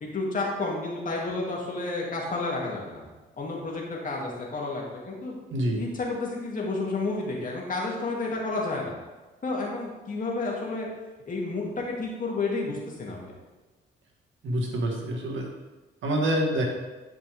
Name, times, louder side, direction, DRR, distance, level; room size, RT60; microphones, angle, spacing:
voice 1, 0.0-3.0 3.4-5.4 5.7-9.0 9.4-10.9 11.3-13.3, left 3 dB, 40° left, -2 dB, 2.4 m, -31 dB
voice 2, 5.5-5.8 14.4-15.5 16.0-16.6, right 1 dB, 75° right, 1 dB, 1.7 m, -26 dB
11.5 x 5.3 x 3.5 m, 1.2 s
cardioid pair, 90°, 20 cm